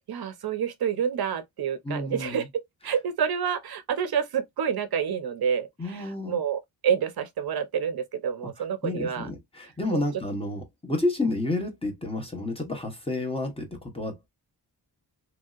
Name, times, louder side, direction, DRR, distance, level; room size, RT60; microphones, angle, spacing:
voice 1, 0.1-2.5 2.8-9.3 9.9-10.0, right 7 dB, 65° right, 0.5 m, -28 dB
voice 2, 1.8-2.5 5.8-6.4 8.8-14.3, left 2 dB, 15° left, 0.8 m, -30 dB
3.1 x 2.6 x 2.3 m
wide cardioid pair, 160°, 41 cm